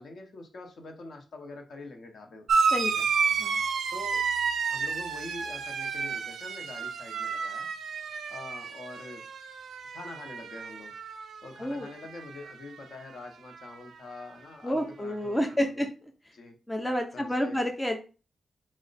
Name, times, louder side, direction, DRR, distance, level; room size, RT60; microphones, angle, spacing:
voice 1, 0.0-2.7 3.0-3.1 3.9-4.3 4.7-7.7 8.3-9.3 9.9-10.9 11.4-15.8 16.3-16.6 17.1-17.6, left 2 dB, 55° left, 4 dB, 0.7 m, -45 dB
sound 1, 2.5-11.5 11.8-12.5 13.6-13.7, right 5 dB, 75° right, 0.4 m, -31 dB
voice 2, 14.6-15.9 16.7-18.0, equal, 5° left, 4 dB, 0.4 m, -29 dB
4.2 x 2.1 x 3.9 m, 0.34 s
wide cardioid pair, 170°, 0 cm